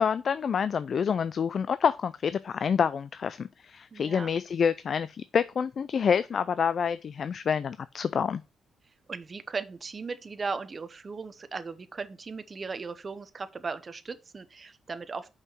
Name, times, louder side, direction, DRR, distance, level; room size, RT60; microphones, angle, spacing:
voice 1, 0.0-8.4, left 7 dB, 50° left, 0.4 m, -27 dB
voice 2, 3.9-4.3 9.1-15.3, right 4 dB, 35° right, 0.9 m, -37 dB
5.9 x 5.5 x 6.0 m
cardioid pair, 100°, 0 cm